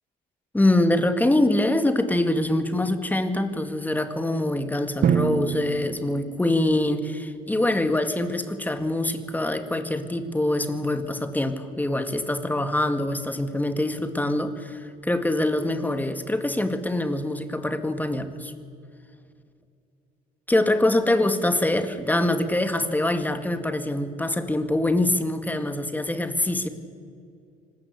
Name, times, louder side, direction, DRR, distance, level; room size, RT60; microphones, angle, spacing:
voice 1, 0.5-18.5 20.5-26.7, left 1 dB, 10° left, 8 dB, 1.9 m, -24 dB
Drum, 5.0-7.0, right 8 dB, 55° right, 1.4 m, -26 dB
26.0 x 19.5 x 8.4 m, 2.4 s
cardioid pair, 110°, 17 cm